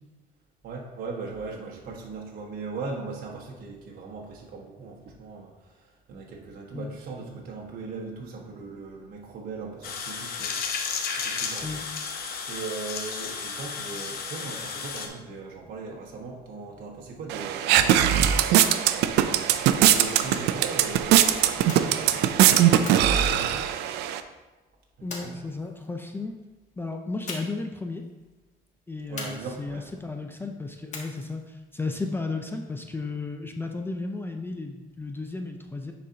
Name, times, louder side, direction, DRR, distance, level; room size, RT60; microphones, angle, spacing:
voice 1, 0.6-11.7 12.1-18.3 19.1-23.7 25.0-25.5 29.1-29.9, right 4 dB, 60° right, -2 dB, 1.1 m, -39 dB
sound 1, 9.8-15.1, left 5 dB, 65° left, 0.9 m, -33 dB
sound 2, 17.3-24.2, right 11 dB, 85° right, 0.4 m, -21 dB
sound 3, 20.0-20.7 21.7-22.3 22.9-24.1 25.1-25.9 27.3-27.7 28.0-28.1 29.2-29.9 30.9-31.5, left 3 dB, 45° left, 1.4 m, -40 dB
voice 2, 25.0-26.4 26.8-28.1 28.9-35.9, left 3 dB, 15° left, 4 dB, 0.5 m, -34 dB
9.7 x 4.1 x 2.8 m, 1.2 s
cardioid pair, 110°, 17 cm